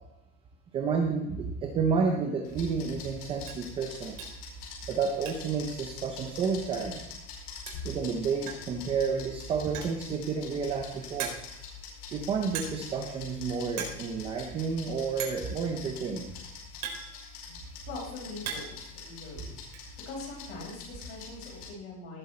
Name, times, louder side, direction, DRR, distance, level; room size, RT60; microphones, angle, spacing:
voice 1, 0.7-4.2 4.9-7.0 7.8-11.4 12.1-16.3, right 5 dB, 15° right, 3 dB, 0.5 m, -30 dB
sound 1, 2.4-21.7, left 4 dB, 75° left, 4.7 m, -45 dB
sound 2, 2.5-2.6 3.0-3.1 3.4-3.7 4.2-4.5 4.8-5.6 5.9-6.0 6.3-6.4 7.4-7.5 7.7-8.0 8.5-8.8 9.6-10.1 10.6-10.7 11.2-11.7 12.5-13.0 13.2-13.4 13.7-14.0 14.3-14.4 15.2-15.5 16.3-17.6 18.1-18.8 19.1-19.8, right 7 dB, 70° right, 4.3 m, -39 dB
voice 2, 17.9-19.7 20.0-22.2, left 3 dB, 30° left, -1 dB, 4.6 m, -42 dB
18.5 x 7.7 x 4.2 m, 0.90 s
supercardioid pair, 170°, 45 cm